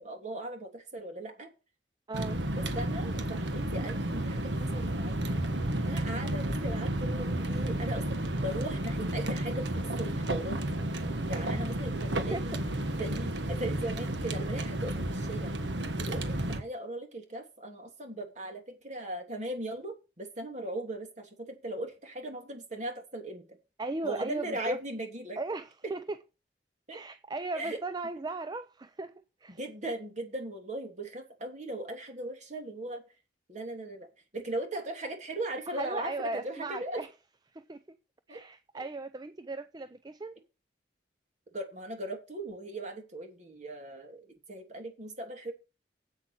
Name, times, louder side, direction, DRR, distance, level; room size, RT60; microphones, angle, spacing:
voice 1, 0.0-1.5 2.5-5.4 5.8-10.8 11.2-12.6 13.0-15.5 16.0-23.5 24.0-25.4 26.9-27.0 27.5-27.8 29.5-33.0 33.5-34.1 34.3-37.0 38.3-38.4 38.7-38.8 41.5-44.2 44.5-45.5, right 1 dB, 45° right, 3.1 m, -38 dB
voice 2, 2.1-2.4 12.3-12.6 23.8-24.8 25.4-26.2 26.9-29.1 29.4-29.6 35.7-37.1 37.5-37.8 38.3-40.4, right 3 dB, 25° right, 0.5 m, -37 dB
sound 1, 2.1-16.6, right 1 dB, 85° right, 1.4 m, -32 dB
8.4 x 8.3 x 6.2 m
head